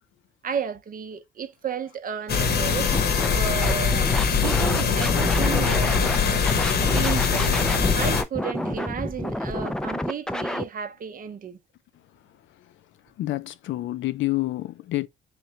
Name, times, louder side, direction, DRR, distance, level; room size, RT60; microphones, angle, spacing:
voice 1, 0.4-2.9 3.3-6.5 6.8-7.6 7.9-11.6, right 7 dB, 45° right, 0.6 m, -33 dB
sound 1, 2.3-8.2, left 5 dB, 55° left, 0.9 m, -22 dB
Scratching (performance technique), 2.9-3.3 3.6-6.2 6.5-10.6, left 1 dB, 5° left, 0.3 m, -29 dB
voice 2, 13.2-15.1, left 17 dB, 75° left, 0.5 m, -28 dB
3.7 x 3.1 x 3.2 m
cardioid pair, 90°, 20 cm